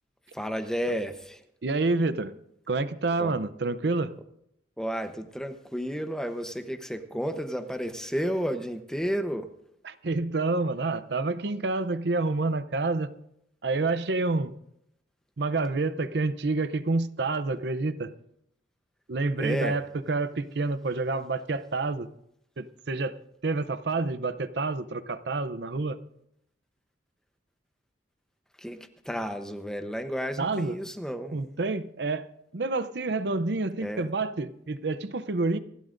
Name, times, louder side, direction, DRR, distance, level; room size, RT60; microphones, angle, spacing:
voice 1, 0.3-1.4 3.2-3.3 4.8-9.5 19.4-19.8 28.6-31.4 33.8-34.1, equal, 5° left, 7 dB, 0.9 m, -32 dB
voice 2, 1.6-2.3 2.7-4.1 9.8-13.1 13.6-14.5 15.4-18.1 19.1-19.8 20.1-22.1 22.6-23.2 23.4-26.0 30.4-30.7 31.3-35.6, right 3 dB, 60° right, 13 dB, 0.6 m, -28 dB
27.5 x 12.5 x 2.6 m, 0.75 s
head